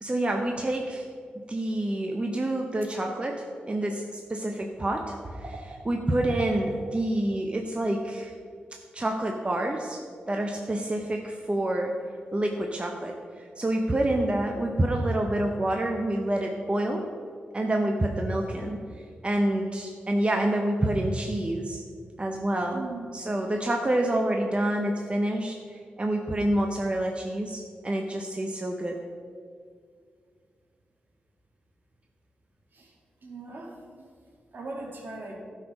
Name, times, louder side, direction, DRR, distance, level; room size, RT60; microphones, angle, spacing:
voice 1, 0.0-1.1 1.5-8.3 8.9-10.0 10.3-11.9 12.3-17.1 17.5-18.8 19.2-21.8 22.2-22.8 23.1-29.0, right 1 dB, 30° right, 2 dB, 0.9 m, -27 dB
voice 2, 22.7-23.1 32.7-32.9 33.2-33.8 34.5-35.4, right 3 dB, 60° right, 0 dB, 2.1 m, -39 dB
12.0 x 5.0 x 5.4 m, 2.1 s
cardioid pair, 50°, 4 cm